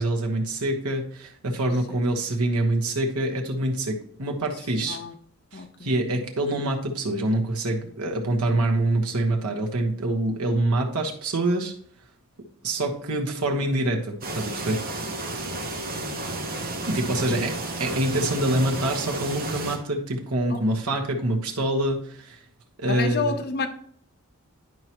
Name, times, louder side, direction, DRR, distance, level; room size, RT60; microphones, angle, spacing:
voice 1, 0.0-5.0 5.5-11.7 12.6-14.8 16.9-17.5 17.8-22.4 22.8-23.4, right 1 dB, 85° right, 1.2 m, -25 dB
voice 2, 4.8-5.1 5.5-5.9 16.0-16.5 17.1-17.4 20.5-20.7 22.9-23.7, left 4 dB, 45° left, 0.7 m, -31 dB
sound 1, 14.2-19.8, right 2 dB, 40° right, 1.0 m, -32 dB
10.5 x 4.8 x 2.9 m
head